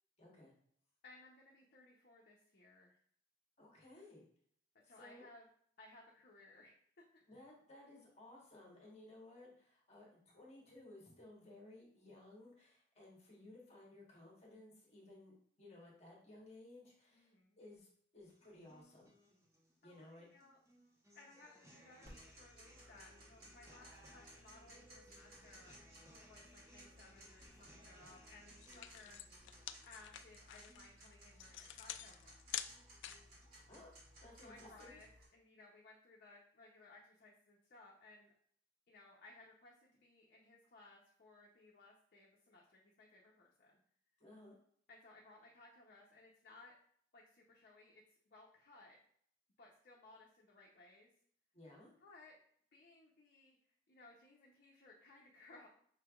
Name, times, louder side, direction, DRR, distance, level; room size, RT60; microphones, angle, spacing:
voice 1, 0.2-0.5 3.6-4.3 4.8-5.3 7.3-17.9 18.1-19.1 19.8-20.3 33.7-33.9 34.2-35.0 44.2-44.6 51.5-51.9, left 2 dB, 35° left, -3 dB, 1.2 m, -58 dB
voice 2, 1.0-3.0 4.9-5.5 5.8-7.2 17.1-17.6 19.8-20.6 21.1-25.8 26.2-29.3 29.9-32.4 34.4-38.3 38.9-43.8 44.9-46.7 47.1-49.0 49.6-51.1 52.0-52.3 52.7-53.6 53.9-55.7, left 3 dB, 55° left, -3 dB, 0.7 m, -61 dB
sound 1, 18.2-34.2, equal, 15° right, 0.9 m, -65 dB
Tick-tock, 22.0-35.3, equal, 55° right, 1.7 m, -61 dB
sound 2, 28.2-28.3 28.6-33.4, left 11 dB, 80° left, 0.3 m, -47 dB
5.8 x 3.3 x 2.3 m, 0.62 s
head